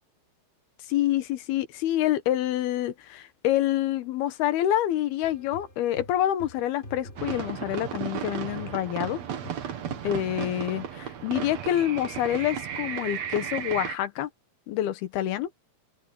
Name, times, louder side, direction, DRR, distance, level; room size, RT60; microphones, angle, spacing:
voice 1, 0.9-9.2 10.0-14.3 14.7-15.5, left 12 dB, 80° left, 3.1 m, -27 dB
sound 1, 5.2-8.3 8.6-10.2, left 1 dB, 15° left, 5.2 m, -46 dB
sound 2, 7.2-14.0, right 8 dB, 55° right, 2.2 m, -34 dB
open air
omnidirectional pair, 4.5 m